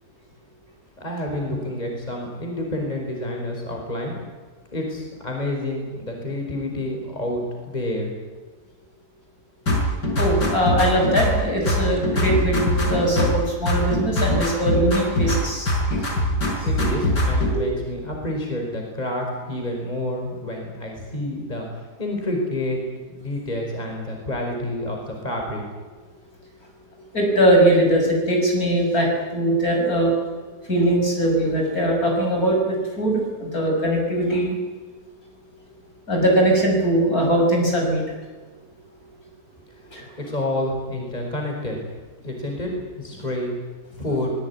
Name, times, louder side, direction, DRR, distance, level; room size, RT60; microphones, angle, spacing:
voice 1, 1.0-4.1 4.7-8.1 16.6-22.8 23.1-25.6 40.2-41.8 42.2-43.5 44.0-44.3, left 1 dB, 25° left, 1 dB, 5.3 m, -28 dB
sound 1, 9.7-11.4 11.7-13.4 13.7-15.4 15.7-17.5, equal, 85° left, 6.0 m, -22 dB
voice 2, 10.2-16.0 16.5-16.8 27.1-30.1 30.7-34.6 36.1-38.0 39.9-40.1, right 1 dB, 60° left, 0 dB, 7.3 m, -21 dB
24.0 x 20.5 x 9.8 m, 1.4 s
omnidirectional pair, 1.8 m